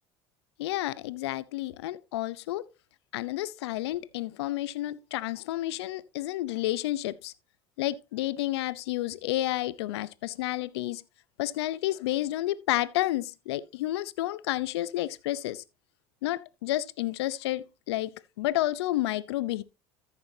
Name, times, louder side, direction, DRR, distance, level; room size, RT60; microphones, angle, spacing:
voice 1, 0.6-2.6 3.1-7.3 7.8-11.0 11.4-15.6 16.2-19.6, left 15 dB, 80° left, 0.8 m, -30 dB
14.0 x 7.0 x 2.8 m
hypercardioid pair, 80°, 13 cm